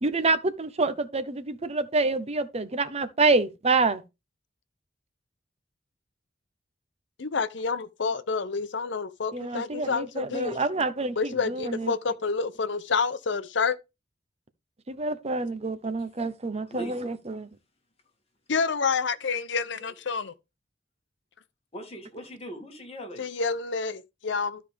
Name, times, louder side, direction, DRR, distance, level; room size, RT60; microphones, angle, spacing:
voice 1, 0.0-4.0 9.3-11.9 14.9-17.5, right 3 dB, 35° right, 0.8 m, -27 dB
voice 2, 7.2-10.6 11.2-13.8 18.5-20.3 23.2-24.6, left 5 dB, 70° left, 0.7 m, -28 dB
voice 3, 16.7-17.1 19.8-19.9 21.7-23.3, equal, 35° left, 2.3 m, -40 dB
13.0 x 5.0 x 3.5 m
head